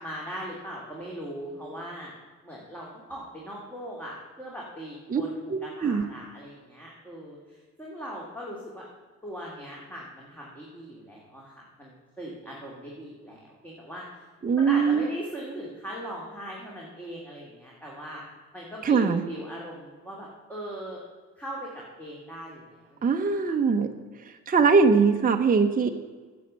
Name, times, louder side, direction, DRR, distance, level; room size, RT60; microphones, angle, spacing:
voice 1, 0.0-2.1 2.4-8.8 9.2-14.2 14.6-18.2 18.5-21.0 21.4-23.5, right 1 dB, 5° left, -4 dB, 2.5 m, -40 dB
voice 2, 5.5-6.1 14.4-15.0 18.8-19.2 23.0-23.9 24.2-25.9, right 5 dB, 30° right, 4 dB, 0.8 m, -22 dB
9.5 x 7.1 x 7.5 m, 1.4 s
cardioid pair, 90°, 30 cm